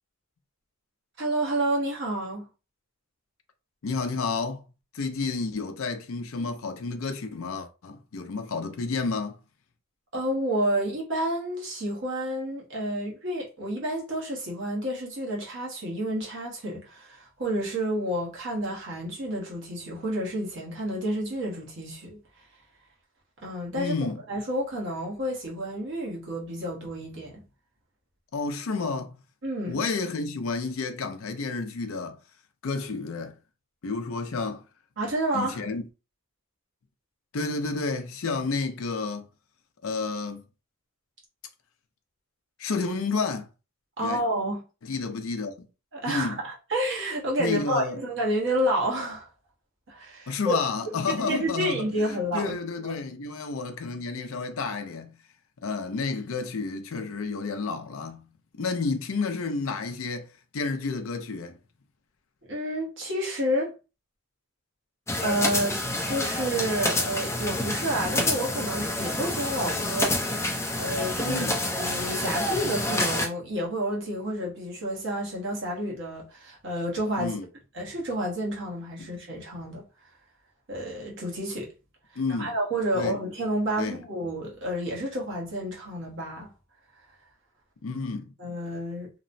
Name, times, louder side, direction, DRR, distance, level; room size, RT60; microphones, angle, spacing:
voice 1, 1.2-2.5 10.1-22.2 23.4-27.4 29.4-29.8 35.0-35.6 44.0-44.6 45.9-49.3 49.9-50.6 51.2-52.9 62.5-63.7 65.2-65.8 66.1-70.5 70.8-71.5 71.8-77.4 77.7-79.8 80.7-81.7 82.4-86.5 88.4-89.1, right 1 dB, 60° right, 1.0 m, -30 dB
voice 2, 3.8-4.6 4.9-9.4 23.7-24.2 28.3-29.2 29.6-32.2 32.6-33.4 33.8-34.6 35.3-35.8 37.3-39.3 39.8-40.4 42.6-43.5 44.0-44.2 44.8-45.7 46.1-46.4 47.4-48.0 50.3-55.2 55.6-58.3 58.6-60.3 60.5-61.6 71.2-71.6 77.2-77.5 79.0-79.1 82.2-82.5 82.9-83.2 83.8-84.0 87.8-88.3, left 4 dB, 70° left, 0.5 m, -30 dB
sound 1, 65.1-73.3, left 1 dB, 15° left, 0.5 m, -28 dB
2.9 x 2.0 x 2.6 m
head